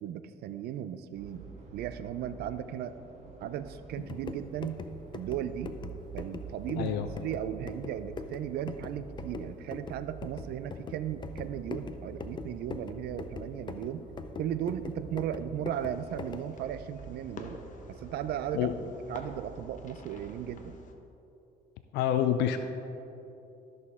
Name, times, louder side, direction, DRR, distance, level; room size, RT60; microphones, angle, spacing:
voice 1, 0.0-1.5 1.7-3.0 3.4-4.8 5.1-5.8 6.1-14.1 14.4-17.6 18.0-18.7 19.1-20.8, right 10 dB, 70° right, 12 dB, 0.5 m, -36 dB
sound 1, 1.1-20.8, right 5 dB, 40° right, 1.6 m, -48 dB
sound 2, 4.0-16.6, left 5 dB, 25° left, 0.5 m, -43 dB
voice 2, 6.8-7.1 18.5-18.8 21.9-22.6, left 10 dB, 85° left, 8 dB, 0.5 m, -27 dB
Fireworks, 15.7-20.9, left 3 dB, 50° left, 0.9 m, -50 dB
13.5 x 6.5 x 3.6 m, 3.0 s
cardioid pair, 110°, 17 cm